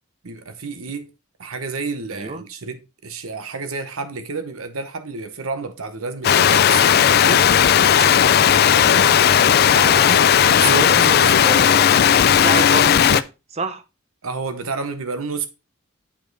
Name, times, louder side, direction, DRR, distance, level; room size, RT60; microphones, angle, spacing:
voice 1, 0.2-1.1 1.4-7.5 7.8-8.3 8.7-9.1 9.7-11.6 14.2-15.5, right 4 dB, 90° right, 1.0 m, -30 dB
voice 2, 2.1-2.5 10.5-13.8, right 2 dB, 30° right, 0.7 m, -28 dB
sound 1, 6.2-13.2, left 9 dB, 50° left, 0.4 m, -15 dB
8.4 x 5.2 x 4.0 m
head